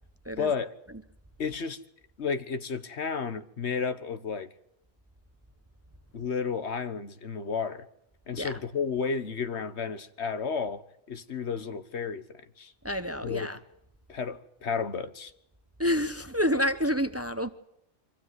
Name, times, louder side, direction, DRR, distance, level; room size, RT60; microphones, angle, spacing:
voice 1, 0.4-0.7 1.4-1.8 2.2-4.5 6.1-7.9 8.3-10.8 11.1-12.3 12.6-12.7 13.2-13.5 14.1-15.3, left 5 dB, 85° left, 1.5 m, -32 dB
voice 2, 12.8-13.6 15.8-17.5, equal, 15° right, 0.8 m, -28 dB
24.5 x 15.5 x 9.4 m
omnidirectional pair, 1.1 m